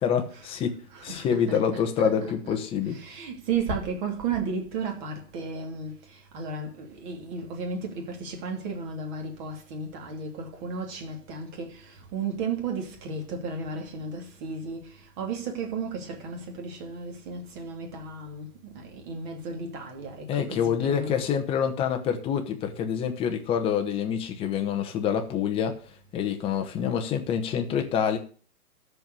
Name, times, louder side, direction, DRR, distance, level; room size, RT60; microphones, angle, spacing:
voice 1, 0.0-3.0 20.3-25.8 26.1-28.2, left 8 dB, 10° left, 1.0 m, -26 dB
voice 2, 0.9-21.3, right 4 dB, 30° right, 2.8 m, -34 dB
13.0 x 4.8 x 8.3 m
hypercardioid pair, 140°, 46 cm